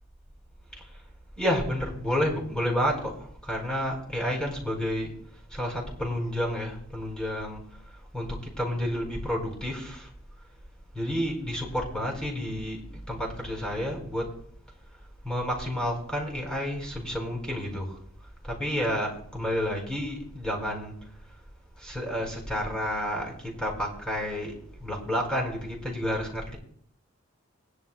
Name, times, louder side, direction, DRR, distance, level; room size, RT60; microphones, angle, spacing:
voice 1, 1.4-5.1 5.5-7.6 8.1-10.1 10.9-12.8 13.1-14.3 15.2-18.0 18.4-21.0 21.8-26.6, equal, 5° left, -1 dB, 4.6 m, -30 dB
21.0 x 11.0 x 2.3 m, 0.62 s
head